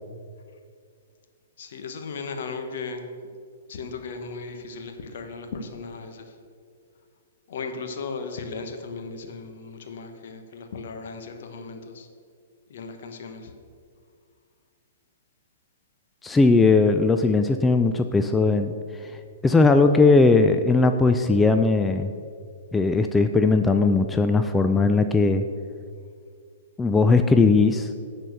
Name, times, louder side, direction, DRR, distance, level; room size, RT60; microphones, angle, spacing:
voice 1, 1.6-3.0 3.7-6.3 7.5-12.1 12.7-13.5, left 4 dB, 60° left, 6 dB, 1.2 m, -36 dB
voice 2, 16.2-18.7 19.0-19.1 19.4-22.1 22.7-25.4 26.8-27.9, left 3 dB, 10° left, 7 dB, 0.4 m, -19 dB
10.5 x 4.4 x 6.7 m, 2.2 s
figure-of-eight pair, 120°, 0 cm